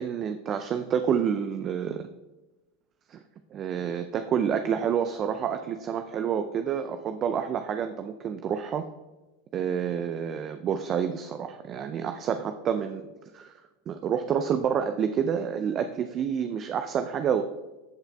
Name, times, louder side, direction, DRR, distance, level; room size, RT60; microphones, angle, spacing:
voice 1, 0.0-2.1 3.1-3.2 3.5-8.9 9.5-13.0 13.3-13.5 13.9-17.4, right 8 dB, 40° right, 8 dB, 0.4 m, -28 dB
13.5 x 5.7 x 2.3 m, 1.1 s
hypercardioid pair, 90°, 0 cm